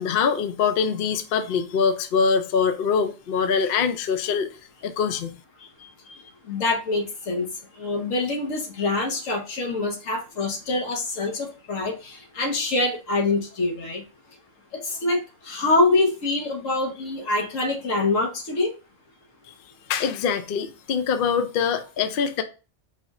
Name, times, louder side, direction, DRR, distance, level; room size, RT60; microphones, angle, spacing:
voice 1, 0.0-4.5 4.8-5.4 19.9-22.4, left 6 dB, 60° left, 0.6 m, -23 dB
voice 2, 6.4-7.5 7.8-14.0 14.7-18.7, left 2 dB, 80° left, 1.4 m, -25 dB
4.2 x 2.4 x 4.0 m
omnidirectional pair, 1.3 m